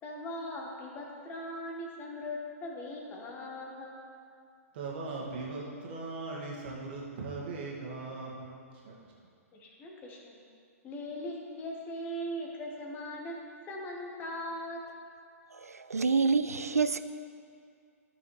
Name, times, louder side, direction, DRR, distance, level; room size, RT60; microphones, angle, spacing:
voice 1, 0.0-4.0 9.5-10.4 10.8-13.4 13.7-14.8, left 1 dB, 20° left, 0 dB, 1.3 m, -39 dB
voice 2, 4.7-9.1, right 3 dB, 45° right, -3 dB, 1.9 m, -39 dB
voice 3, 15.6-17.0, right 4 dB, 75° right, 11 dB, 0.4 m, -27 dB
14.0 x 6.1 x 3.3 m, 2.3 s
figure-of-eight pair, 115°, 8 cm